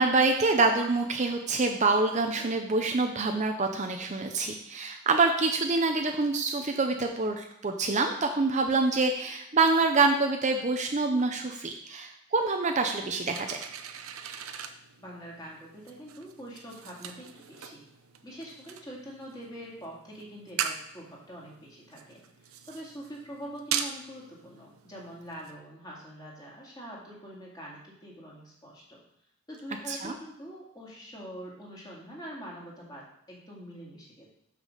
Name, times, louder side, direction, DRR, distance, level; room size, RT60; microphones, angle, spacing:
voice 1, 0.0-13.6 29.9-30.1, right 3 dB, 35° right, 4 dB, 0.6 m, -26 dB
sound 1, 13.3-25.6, right 8 dB, 85° right, 0.7 m, -40 dB
voice 2, 15.0-17.8 18.2-29.0 29.5-34.3, equal, 20° left, -4 dB, 2.3 m, -44 dB
6.2 x 5.9 x 6.5 m, 0.77 s
head